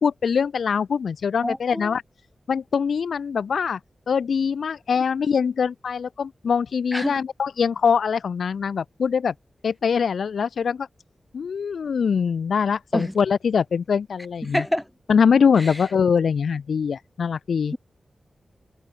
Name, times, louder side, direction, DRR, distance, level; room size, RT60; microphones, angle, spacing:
voice 1, 0.0-2.0 2.5-3.8 4.1-9.3 9.6-10.9 11.3-14.6 15.1-17.7, left 6 dB, 85° left, 0.8 m, -23 dB
voice 2, 1.4-1.9 6.9-7.2 12.9-13.1 14.5-14.9 15.6-15.8, equal, 5° left, 3.3 m, -27 dB
wide cardioid pair, 75°, 0 cm